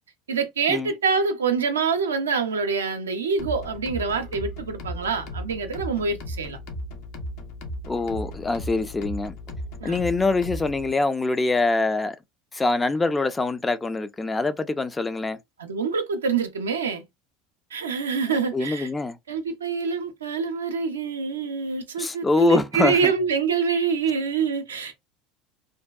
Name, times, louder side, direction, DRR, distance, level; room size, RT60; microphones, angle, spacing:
voice 1, 0.3-6.6 9.8-10.0 15.6-17.0 17.7-18.9 19.3-25.0, right 5 dB, 85° right, 0.4 m, -26 dB
sound 1, 3.4-10.9, equal, 65° left, 0.6 m, -36 dB
voice 2, 7.9-9.4 9.8-12.2 12.5-15.4 18.5-19.2 22.0-23.1, left 3 dB, 20° left, 0.3 m, -24 dB
2.6 x 2.2 x 2.2 m
hypercardioid pair, 75°, 0 cm